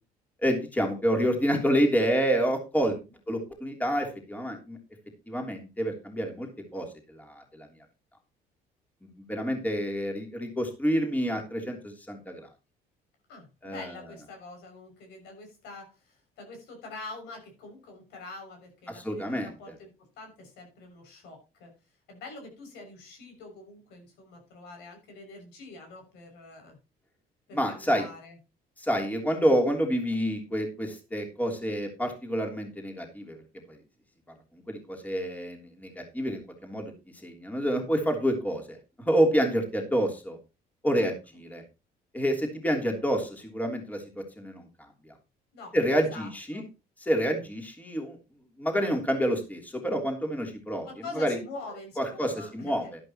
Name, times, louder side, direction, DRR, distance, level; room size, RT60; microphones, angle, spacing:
voice 1, 0.4-3.0 3.3-4.8 5.3-6.5 6.7-7.7 9.2-12.5 13.6-13.9 18.9-19.5 27.5-28.0 28.8-33.4 33.7-33.8 34.7-36.9 37.2-40.4 40.8-41.6 42.1-44.6 45.0-45.1 45.7-46.6 47.1-48.2 48.6-50.9 51.1-51.4 52.0-52.8, equal, 10° left, 2 dB, 3.2 m, -28 dB
voice 2, 13.3-19.9 20.2-21.7 22.1-26.8 27.5-28.4 40.9-41.4 45.5-46.6 50.8-52.9, left 3 dB, 85° left, 3 dB, 6.4 m, -45 dB
12.0 x 11.5 x 3.0 m, 0.28 s
cardioid pair, 110°, 17 cm